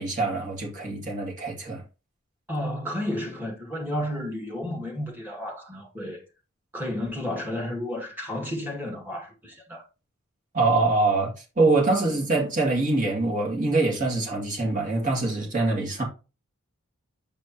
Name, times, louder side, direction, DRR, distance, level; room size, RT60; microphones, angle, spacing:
voice 1, 0.0-1.8 10.5-16.0, right 3 dB, 35° right, 2.3 m, -24 dB
voice 2, 2.5-6.2 6.7-9.8, left 1 dB, 10° right, 2.0 m, -32 dB
7.3 x 5.1 x 3.0 m
head